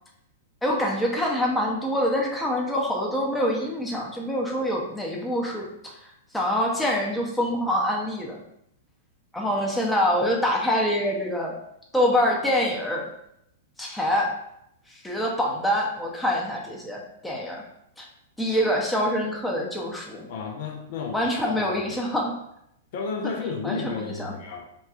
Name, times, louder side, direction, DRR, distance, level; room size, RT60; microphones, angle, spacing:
voice 1, 0.6-6.0 6.3-8.4 9.3-11.5 11.9-13.1 13.8-14.3 14.9-17.6 18.0-18.1 18.4-20.3 21.1-22.3 23.6-24.3, equal, 5° left, -2 dB, 0.6 m, -25 dB
voice 2, 20.3-21.8 22.9-24.7, left 5 dB, 55° left, 2 dB, 0.4 m, -32 dB
4.1 x 2.2 x 2.4 m, 0.77 s
hypercardioid pair, 115°, 0 cm